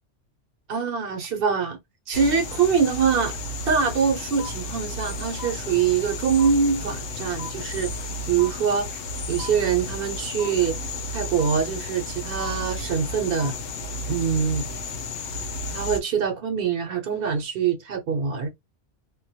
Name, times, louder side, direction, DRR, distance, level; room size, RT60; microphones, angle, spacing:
voice 1, 0.7-1.8 2.1-3.4 3.7-9.0 9.3-10.8 11.1-13.5 14.1-14.7 15.7-18.5, right 6 dB, 60° right, 0.7 m, -24 dB
sound 1, 2.1-16.0, left 2 dB, 85° left, 0.9 m, -33 dB
sound 2, 4.4-4.5 5.4-5.5 6.4-6.5 7.4-7.5 8.4-8.5 9.4-9.5 10.4-10.5 11.4-11.5 12.4-12.5 13.4-13.5, left 4 dB, 60° left, 0.4 m, -36 dB
2.1 x 2.1 x 2.7 m
omnidirectional pair, 1.2 m